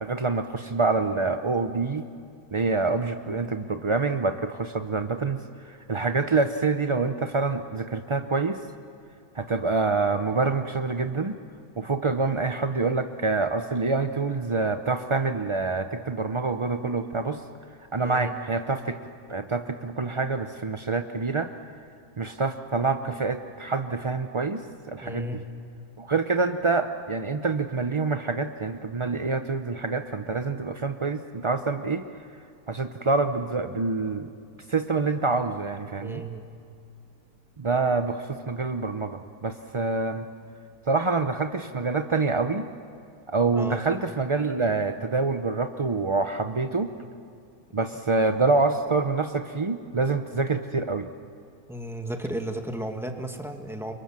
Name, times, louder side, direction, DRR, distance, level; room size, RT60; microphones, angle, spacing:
voice 1, 0.0-2.1 2.5-8.6 9.3-11.4 11.8-17.4 17.9-19.0 19.3-21.5 22.2-25.3 26.0-32.0 32.7-34.3 34.7-36.2 37.6-40.3 40.9-42.7 43.3-46.9 47.7-51.1, right 3 dB, 40° right, 7 dB, 0.4 m, -26 dB
voice 2, 18.0-18.3 25.0-25.4 36.0-36.4 43.5-43.8 47.0-47.1 51.7-53.9, right 1 dB, ahead, 3 dB, 1.9 m, -34 dB
29.0 x 24.5 x 7.4 m, 2.4 s
omnidirectional pair, 1.6 m